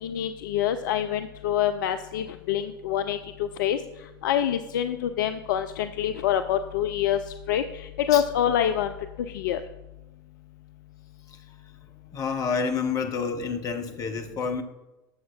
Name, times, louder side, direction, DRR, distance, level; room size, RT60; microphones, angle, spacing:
voice 1, 0.0-3.2 3.6-3.8 4.2-7.2 7.5-7.6 8.1-8.9 9.3-9.6, left 10 dB, 55° left, 10 dB, 0.4 m, -25 dB
voice 2, 12.1-14.6, left 5 dB, 30° left, 7 dB, 0.9 m, -29 dB
12.5 x 7.2 x 2.3 m, 1.0 s
figure-of-eight pair, 80°, 12 cm